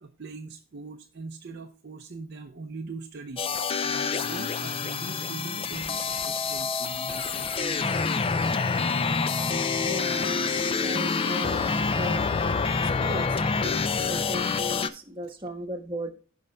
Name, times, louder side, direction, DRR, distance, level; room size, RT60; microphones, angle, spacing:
voice 1, 0.0-3.4 3.8-8.1, right 3 dB, 50° right, 0.5 m, -41 dB
sound 1, 3.4-14.9, left 4 dB, 25° left, 0.4 m, -27 dB
voice 2, 9.8-10.4 10.7-12.2 13.0-16.1, equal, 25° right, 1.2 m, -37 dB
15.5 x 5.3 x 2.2 m
head